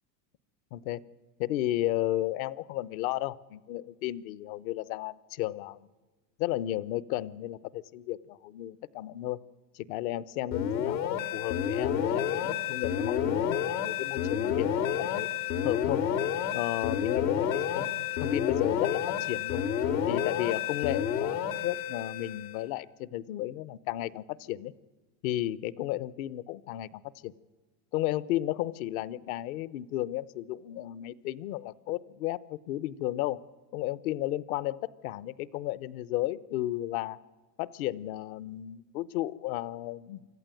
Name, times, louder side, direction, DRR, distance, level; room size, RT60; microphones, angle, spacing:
voice 1, 0.7-1.1 1.4-5.9 6.4-9.4 9.7-15.3 15.6-16.0 16.5-19.6 20.1-24.7 25.2-27.3 27.9-33.4 33.7-37.2 37.6-40.2, left 14 dB, 60° left, 20 dB, 0.9 m, -33 dB
sound 1, 10.5-22.6, left 8 dB, 80° left, 2.4 m, -30 dB
25.0 x 14.5 x 9.1 m, 1.3 s
supercardioid pair, 140°, 49 cm